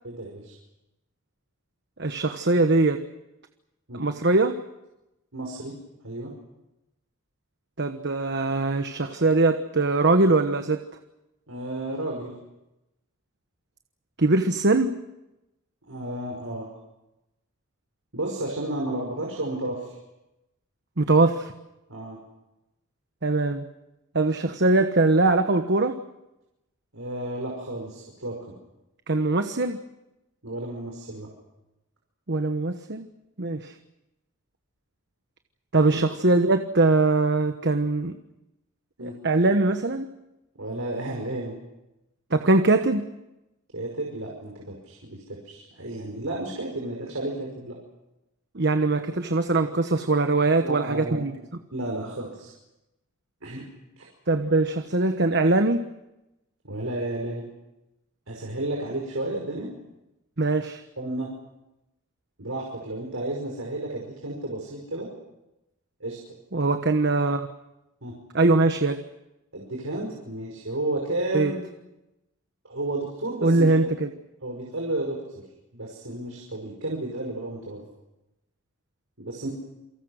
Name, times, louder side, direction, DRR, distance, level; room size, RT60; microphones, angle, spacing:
voice 1, 0.0-0.5 3.9-4.0 5.3-5.8 6.0-6.3 11.5-12.3 15.9-16.7 18.1-20.0 21.9-22.2 26.9-28.6 30.4-31.3 35.9-36.0 39.0-39.2 40.6-41.6 43.7-47.8 50.5-51.2 51.7-52.5 53.4-53.6 54.0-54.1 56.6-57.5 58.3-59.7 61.0-61.3 62.4-65.1 66.0-66.2 68.0-68.2 69.5-71.6 72.6-73.7 74.4-75.2 75.7-77.8 79.2-79.5, right 1 dB, 80° right, -1 dB, 5.5 m, -32 dB
voice 2, 2.0-3.0 3.9-4.6 7.8-10.8 14.2-14.9 21.0-21.5 23.2-23.7 24.1-26.0 29.1-29.8 32.3-33.1 33.4-33.7 35.7-38.2 39.0-40.1 42.3-43.1 48.5-51.3 54.3-55.8 60.4-60.8 66.5-67.5 68.3-69.0 71.3-71.5 73.4-74.1, right 2 dB, 55° right, 7 dB, 1.2 m, -22 dB
28.5 x 24.0 x 6.5 m, 0.95 s
head